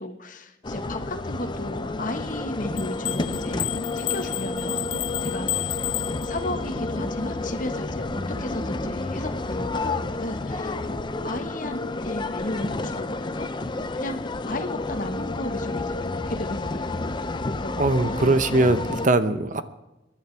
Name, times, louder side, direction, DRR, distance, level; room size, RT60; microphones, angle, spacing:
voice 1, 0.0-4.9 5.2-5.8 6.0-8.1 8.4-13.5 13.9-17.1 17.5-18.2, left 1 dB, 45° left, 7 dB, 1.4 m, -35 dB
sound 1, 0.6-19.1, left 2 dB, 25° left, 0.6 m, -30 dB
sound 2, 2.8-6.7, left 18 dB, 85° left, 0.4 m, -31 dB
sound 3, 3.1-11.0, right 1 dB, 75° right, 1.9 m, -44 dB
voice 2, 17.8-19.6, right 2 dB, 45° right, 11 dB, 0.8 m, -21 dB
24.0 x 11.0 x 3.4 m, 1.0 s
head